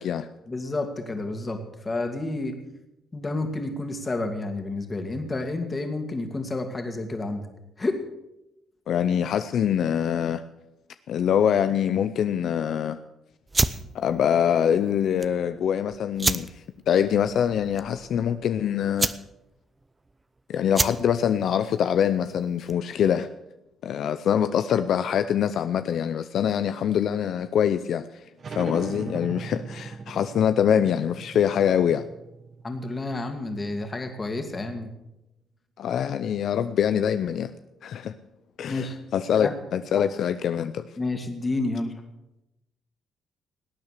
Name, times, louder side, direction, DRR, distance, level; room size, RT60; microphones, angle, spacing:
voice 1, 0.5-2.6 3.1-7.5 7.8-8.0 32.6-34.9 38.7-39.0 39.4-39.5 41.0-41.9, left 2 dB, 25° left, 2.4 m, -30 dB
voice 2, 8.9-10.4 11.1-13.0 13.9-16.5 16.9-19.1 20.5-23.3 23.8-28.1 28.5-32.1 35.8-37.5 37.8-38.1 38.6-40.9, left 9 dB, 70° left, 0.5 m, -24 dB
sound 1, 13.5-23.0, right 2 dB, 20° right, 0.6 m, -31 dB
sound 2, 28.4-33.7, right 4 dB, 45° right, 1.0 m, -39 dB
18.5 x 8.8 x 6.6 m
cardioid pair, 90°, 0 cm